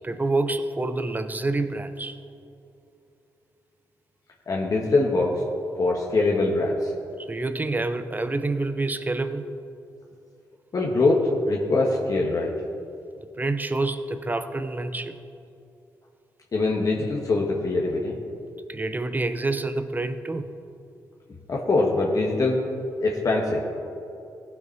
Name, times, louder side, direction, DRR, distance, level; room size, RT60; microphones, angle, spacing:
voice 1, 0.0-2.2 7.2-9.5 13.4-15.2 18.7-20.5, right 2 dB, 25° right, 10 dB, 0.7 m, -27 dB
voice 2, 4.5-5.4 5.8-6.9 10.7-12.5 16.5-18.1 21.5-22.6 23.0-23.6, left 2 dB, 50° left, -2 dB, 1.3 m, -23 dB
15.5 x 5.8 x 4.5 m, 2.6 s
supercardioid pair, 55°, 8 cm